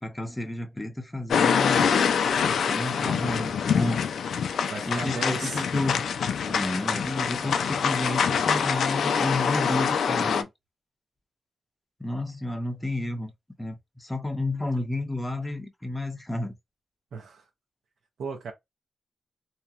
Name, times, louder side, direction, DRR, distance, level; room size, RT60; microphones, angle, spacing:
voice 1, 0.0-2.0 2.7-4.0 4.8-6.0 6.5-10.5 12.0-13.3 13.6-16.6, left 2 dB, 10° left, 0.6 m, -31 dB
sound 1, 1.3-10.4, left 6 dB, 75° left, 0.3 m, -25 dB
voice 2, 4.7-5.7 17.1-17.5 18.2-18.5, right 4 dB, 75° right, 0.6 m, -35 dB
2.8 x 2.2 x 2.4 m
wide cardioid pair, 140°, 0 cm